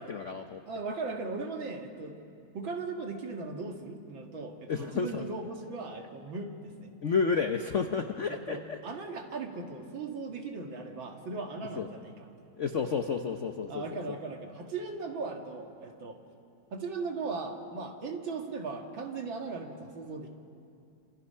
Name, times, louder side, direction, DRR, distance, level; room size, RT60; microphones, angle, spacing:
voice 1, 0.0-0.6 4.7-5.2 7.0-8.8 11.8-11.9 12.6-13.8, left 5 dB, 60° left, 6 dB, 0.8 m, -31 dB
voice 2, 0.7-2.1 2.5-6.9 8.3-12.3 13.7-16.2 16.7-20.3, right 4 dB, 60° right, 3 dB, 2.6 m, -38 dB
29.0 x 26.0 x 5.6 m, 2.5 s
omnidirectional pair, 2.4 m